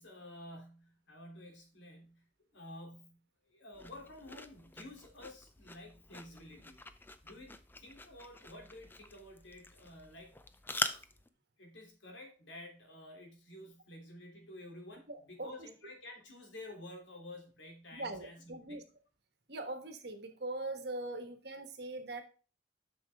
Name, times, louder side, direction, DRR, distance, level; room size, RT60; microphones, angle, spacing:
voice 1, 0.0-10.4 10.7-11.0 11.6-18.9, left 1 dB, 80° left, 1 dB, 3.0 m, -51 dB
sound 1, 3.7-11.3, left 2 dB, 10° left, 0.5 m, -44 dB
voice 2, 15.1-15.7 17.9-18.8 19.5-22.2, right 2 dB, 60° right, 7 dB, 1.3 m, -41 dB
7.9 x 6.2 x 3.5 m, 0.36 s
head